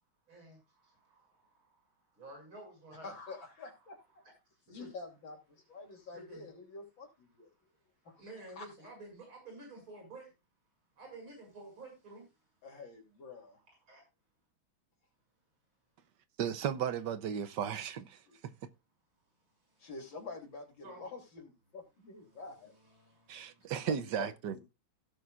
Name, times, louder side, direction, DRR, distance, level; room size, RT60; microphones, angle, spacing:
voice 1, 0.3-3.1 4.7-4.9 6.1-6.5 8.2-10.3 11.0-12.3 13.8-14.0 19.6-19.9 20.8-21.0 22.2-23.7, right 2 dB, 85° right, 7.0 m, -52 dB
voice 2, 3.0-4.2 4.7-7.5 8.0-8.2 8.6-8.7 12.6-13.6 18.3-18.4 19.8-22.7 23.7-24.6, left 3 dB, 70° left, 3.6 m, -47 dB
voice 3, 16.4-18.2 23.3-24.5, right 8 dB, 65° right, 1.3 m, -35 dB
16.5 x 7.7 x 2.4 m
omnidirectional pair, 2.2 m